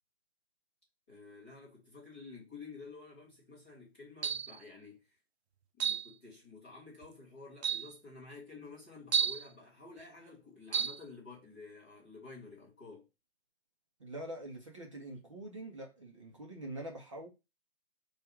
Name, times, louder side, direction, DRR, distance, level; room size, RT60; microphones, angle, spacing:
voice 1, 1.1-5.2 5.8-13.1, left 4 dB, 10° left, 0.8 m, -51 dB
sound 1, 4.2-4.6 5.8-6.1 7.0-7.1 7.6-7.9 9.1-9.5 10.7-11.0, right 7 dB, 90° right, 0.5 m, -31 dB
voice 2, 14.0-17.3, right 1 dB, 30° right, 0.6 m, -44 dB
4.8 x 2.3 x 4.4 m
hypercardioid pair, 175°, 31 cm